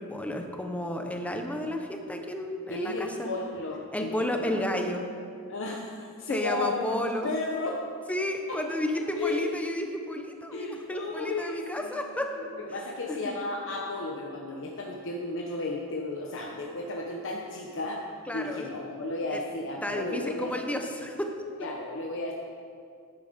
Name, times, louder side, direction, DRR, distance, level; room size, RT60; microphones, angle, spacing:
voice 1, 0.0-3.3 3.9-5.0 6.3-7.3 8.1-12.3 13.1-13.3 18.3-18.7 19.3-19.4 19.8-21.3, left 1 dB, 5° left, 4 dB, 0.9 m, -32 dB
voice 2, 2.7-4.6 5.5-7.8 8.5-8.6 9.2-9.9 10.5-20.7 21.6-22.3, left 2 dB, 60° left, -1 dB, 1.0 m, -34 dB
11.5 x 9.9 x 5.2 m, 2.3 s
head